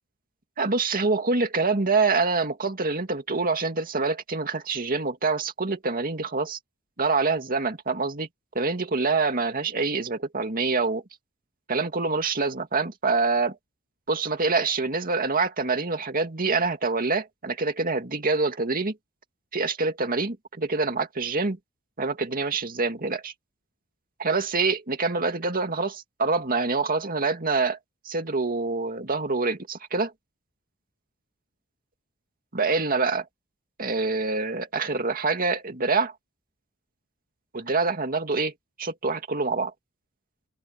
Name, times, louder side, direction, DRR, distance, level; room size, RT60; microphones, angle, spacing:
voice 1, 0.6-6.6 7.0-8.3 8.5-11.0 11.7-13.6 14.1-19.0 19.5-21.6 22.0-23.3 24.2-27.8 28.1-30.1 32.5-33.2 33.8-36.1 37.5-38.5 38.8-39.7, right 4 dB, 45° right, 2.3 m, -26 dB
open air
head